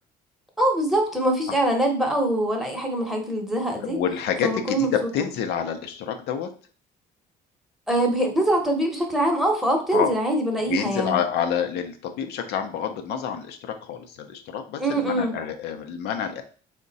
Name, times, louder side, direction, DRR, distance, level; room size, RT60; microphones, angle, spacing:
voice 1, 0.6-4.0 4.4-5.1 7.9-11.2 14.8-15.4, right 1 dB, ahead, 2 dB, 0.9 m, -23 dB
voice 2, 3.8-6.5 9.9-10.1 10.7-16.4, left 8 dB, 80° left, 5 dB, 0.6 m, -28 dB
3.6 x 2.1 x 3.9 m, 0.41 s
cardioid pair, 110°, 17 cm